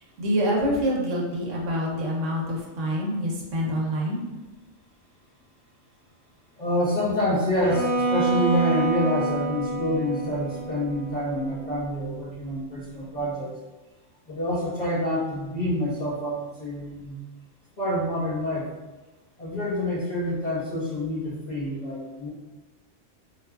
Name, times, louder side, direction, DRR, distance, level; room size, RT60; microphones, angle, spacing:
voice 1, 0.2-4.2, equal, 80° right, -2 dB, 1.1 m, -26 dB
voice 2, 6.5-13.5 14.3-17.2 17.8-18.7 19.4-22.3, left 1 dB, 35° left, -9 dB, 1.0 m, -27 dB
Bowed string instrument, 7.6-11.6, right 3 dB, 10° right, 0.6 m, -27 dB
3.6 x 2.4 x 2.3 m, 1.2 s
omnidirectional pair, 1.3 m